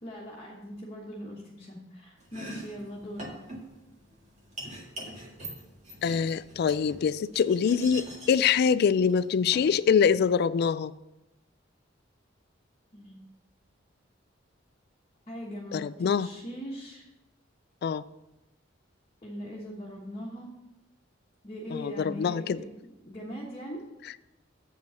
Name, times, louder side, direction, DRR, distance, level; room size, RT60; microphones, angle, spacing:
voice 1, 0.0-3.3 12.9-13.2 15.3-17.1 19.2-20.5 21.4-22.6 23.0-23.8, equal, 30° left, -5 dB, 1.2 m, -40 dB
Domestic sounds home sounds, 2.2-10.4, right 1 dB, 35° right, 1.8 m, -44 dB
voice 2, 6.0-10.9 15.7-16.3 17.8-18.0 21.7-22.6, left 6 dB, 55° left, 17 dB, 0.3 m, -24 dB
7.7 x 5.3 x 7.0 m, 0.97 s
head